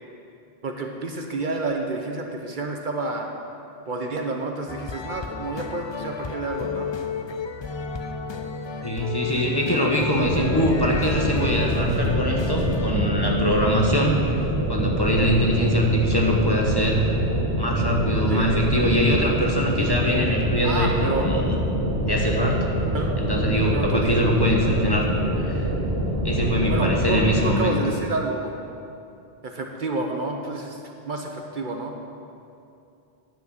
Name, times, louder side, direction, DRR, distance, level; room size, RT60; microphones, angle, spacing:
voice 1, 0.6-3.3 3.9-6.9 9.8-9.9 18.3-18.5 20.6-21.3 22.9-23.3 23.7-24.3 26.7-28.5 29.4-32.0, right 2 dB, 55° right, 2 dB, 0.9 m, -29 dB
sound 1, 4.7-13.0, left 5 dB, 40° left, 0.4 m, -33 dB
voice 2, 8.8-14.2 14.7-17.0 17.6-21.6 22.0-22.8 23.2-25.1 25.4-25.9 26.2-27.8, equal, 25° left, -1 dB, 1.2 m, -23 dB
sound 2, 10.1-27.4, right 1 dB, 80° right, 1.9 m, -25 dB
9.2 x 8.1 x 6.4 m, 2.6 s
omnidirectional pair, 1.0 m